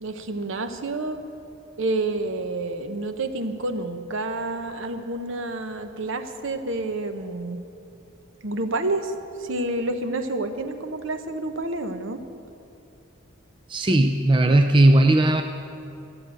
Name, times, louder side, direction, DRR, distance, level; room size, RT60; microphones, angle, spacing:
voice 1, 0.0-1.2 1.8-7.6 8.4-9.1 9.4-12.2, right 2 dB, 60° right, 8 dB, 0.8 m, -29 dB
voice 2, 13.7-15.4, right 1 dB, 25° right, 5 dB, 0.4 m, -17 dB
12.5 x 7.9 x 8.8 m, 2.7 s
head